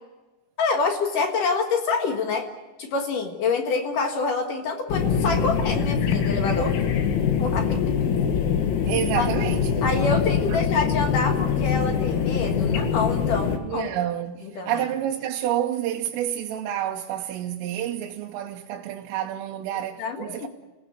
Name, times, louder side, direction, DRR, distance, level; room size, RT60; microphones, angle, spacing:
voice 1, 0.6-2.5 2.8-6.7 7.4-7.9 9.2-9.3 9.8-13.9 14.6-14.8 20.0-20.5, left 4 dB, 55° left, 2.5 m, -26 dB
sound 1, 4.9-13.6, left 7 dB, 90° left, 4.4 m, -23 dB
voice 2, 8.9-10.0 10.4-10.6 13.6-20.5, right 11 dB, 85° right, 3.5 m, -29 dB
27.5 x 17.5 x 8.2 m
omnidirectional pair, 5.8 m